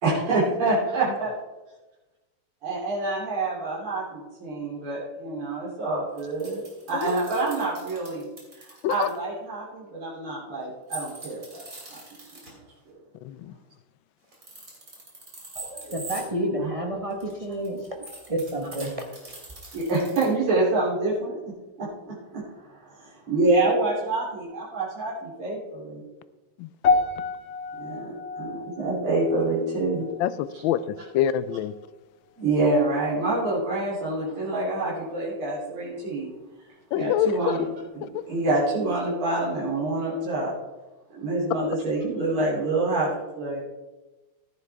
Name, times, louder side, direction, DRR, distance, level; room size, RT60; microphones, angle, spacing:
voice 1, 0.0-1.3 2.6-6.6 6.9-8.2 8.6-11.6 11.9-12.0 16.6-16.7 19.7-21.4 21.8-22.4 22.8-26.0 27.8-30.1 32.4-36.3 36.9-37.7 37.9-40.5 41.2-43.1 43.4-43.6, right 2 dB, 80° right, -8 dB, 4.3 m, -26 dB
sound 1, 6.2-9.1 10.9-12.5 14.2-16.2 17.1-20.2, right 2 dB, 40° right, 3.4 m, -41 dB
voice 2, 15.6-19.1, right 1 dB, 20° right, 2 dB, 0.9 m, -30 dB
sound 2, 26.8-31.2 31.5-31.9 32.5-32.6, left 4 dB, 50° left, 0.8 m, -29 dB
voice 3, 30.2-31.7 36.9-37.6 38.0-38.2, left 10 dB, 75° left, 15 dB, 1.2 m, -26 dB
14.5 x 10.0 x 3.5 m, 1.1 s
omnidirectional pair, 2.4 m